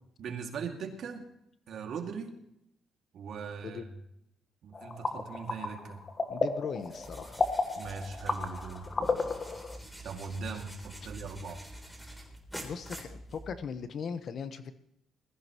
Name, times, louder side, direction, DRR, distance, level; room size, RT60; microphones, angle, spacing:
voice 1, 0.2-1.3 1.7-2.3 3.1-3.8 4.6-6.0 7.8-8.9 10.0-11.6, right 5 dB, 65° right, 3 dB, 2.4 m, -40 dB
sound 1, 4.7-9.8, left 3 dB, 35° left, 1.5 m, -33 dB
voice 2, 6.3-7.4 12.6-14.7, left 6 dB, 60° left, 11 dB, 1.2 m, -38 dB
sound 2, 6.8-13.8, right 1 dB, 5° left, 3.5 m, -47 dB
21.0 x 14.5 x 3.1 m, 0.78 s
cardioid pair, 90°, 0 cm